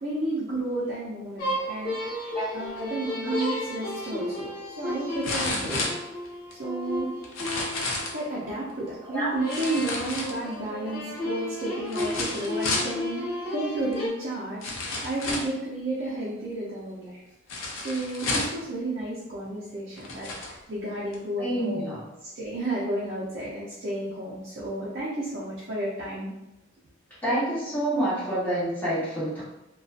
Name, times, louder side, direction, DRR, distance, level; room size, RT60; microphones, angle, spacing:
voice 1, 0.0-5.8 6.5-7.1 8.1-13.2 13.5-17.2 17.7-21.8 22.3-26.3, right 2 dB, 55° right, -7 dB, 0.5 m, -32 dB
sound 1, 1.4-8.8 9.4-14.1, left 1 dB, 50° left, 0.9 m, -33 dB
sound 2, 3.9-4.0 5.2-6.5 7.2-8.2 9.5-10.7 11.9-12.9 13.9-14.0 14.6-15.6 17.5-18.6 19.4-19.5 20.0-20.5 21.1-21.2, left 2 dB, 85° left, 0.5 m, -31 dB
voice 2, 21.4-22.0 27.2-29.4, right 1 dB, 10° left, -10 dB, 1.0 m, -27 dB
2.6 x 2.3 x 2.4 m, 0.95 s
head